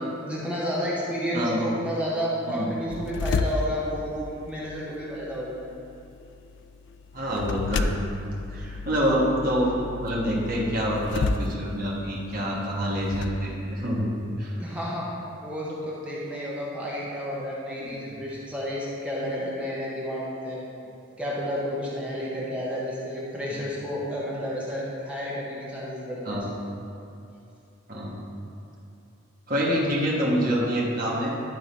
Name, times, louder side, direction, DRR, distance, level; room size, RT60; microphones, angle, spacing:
voice 1, 0.2-5.6 14.6-15.1 15.4-20.6 21.2-26.4, equal, 5° right, -7 dB, 1.0 m, -31 dB
sound 1, 2.9-13.3, left 3 dB, 65° left, 0.3 m, -33 dB
voice 2, 7.1-8.0 8.5-14.1 14.4-14.5 17.8-18.2 23.6-23.7 26.2-26.5 27.9-28.2 29.5-31.3, equal, 45° right, -4 dB, 1.3 m, -26 dB
11.0 x 3.8 x 4.1 m, 2.7 s
head